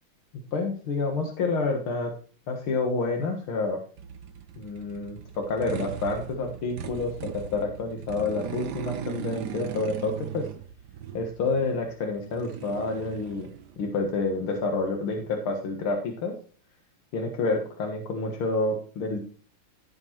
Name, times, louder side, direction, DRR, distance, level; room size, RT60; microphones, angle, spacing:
voice 1, 0.5-2.1 2.5-3.8 4.6-10.5 11.1-13.5 13.8-16.3 17.1-19.2, left 3 dB, 80° left, 2 dB, 2.4 m, -28 dB
sound 1, 4.0-15.4, right 8 dB, 60° right, 1.3 m, -39 dB
16.0 x 5.4 x 4.5 m, 0.41 s
omnidirectional pair, 2.3 m